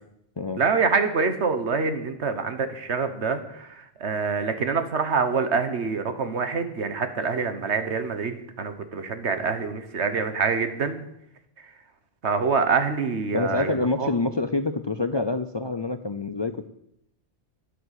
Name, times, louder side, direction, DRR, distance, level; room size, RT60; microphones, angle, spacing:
voice 1, 0.6-11.0 12.2-14.1, right 5 dB, 85° right, 9 dB, 1.6 m, -26 dB
voice 2, 13.3-16.7, left 3 dB, 35° left, 10 dB, 0.4 m, -27 dB
10.5 x 9.3 x 8.3 m, 0.79 s
omnidirectional pair, 1.1 m